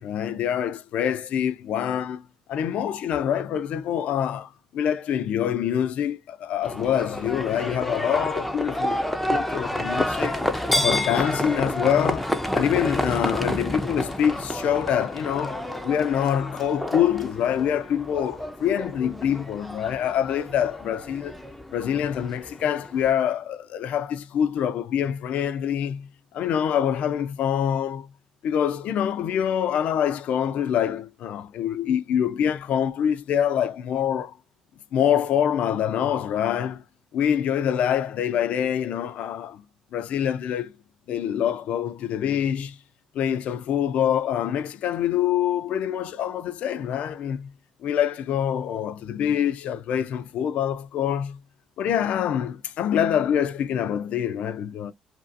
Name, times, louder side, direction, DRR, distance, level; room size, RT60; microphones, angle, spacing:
voice 1, 0.0-2.2 2.5-10.4 10.7-12.3 12.5-21.4 21.7-26.1 26.3-28.1 28.4-34.4 34.9-36.8 37.1-39.6 39.9-40.8 41.1-42.8 43.1-47.5 47.8-51.4 51.8-54.9, left 9 dB, 60° left, 0.4 m, -25 dB
Livestock farm animals working animals, 6.6-23.1, left 1 dB, 5° left, 0.4 m, -29 dB
2.6 x 2.4 x 2.4 m
cardioid pair, 100°, 3 cm